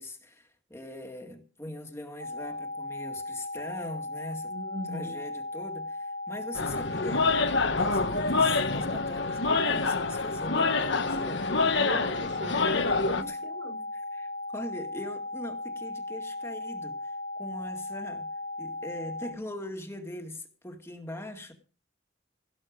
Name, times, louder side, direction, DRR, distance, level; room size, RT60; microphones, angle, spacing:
voice 1, 0.0-4.5 4.8-7.4 7.7-11.5 13.2-13.4 13.9-18.3 18.6-21.5, left 1 dB, 15° left, 2.0 m, -41 dB
sound 1, 2.2-19.3, left 2 dB, 85° right, 2.9 m, -37 dB
voice 2, 4.5-5.1 11.8-13.8, right 1 dB, 65° right, 5.8 m, -38 dB
sound 2, 6.5-13.2, left 3 dB, 60° left, 1.3 m, -27 dB
17.5 x 8.7 x 5.2 m
head